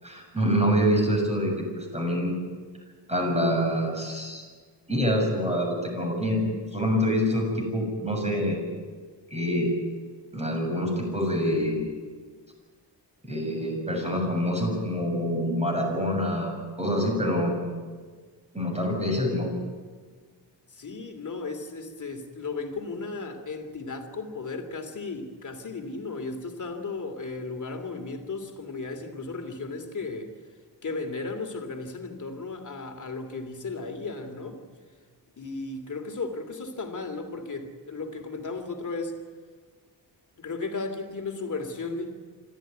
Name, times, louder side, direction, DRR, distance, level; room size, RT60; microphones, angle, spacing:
voice 1, 0.0-2.4 3.1-4.4 4.9-6.5 6.7-8.6 9.3-9.7 10.3-11.8 13.2-17.6 18.5-19.5, equal, 15° right, 1 dB, 7.1 m, -26 dB
voice 2, 20.7-30.3 30.8-34.6 35.4-39.2 40.4-42.1, left 3 dB, 45° left, 6 dB, 3.0 m, -35 dB
26.5 x 14.0 x 9.3 m, 1.5 s
wide cardioid pair, 125°, 42 cm